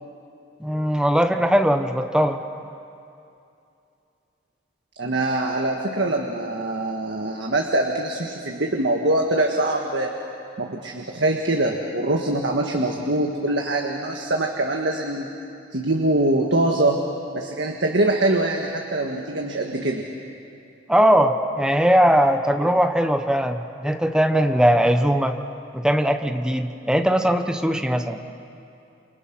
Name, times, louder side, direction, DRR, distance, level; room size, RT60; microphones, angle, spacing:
voice 1, 0.6-2.4 20.9-25.4 25.7-28.2, equal, 5° right, 6 dB, 1.0 m, -20 dB
voice 2, 5.0-10.1 10.6-15.3 15.7-17.0 17.3-20.0, right 2 dB, 70° right, 1 dB, 1.7 m, -23 dB
28.5 x 27.5 x 6.2 m, 2.6 s
head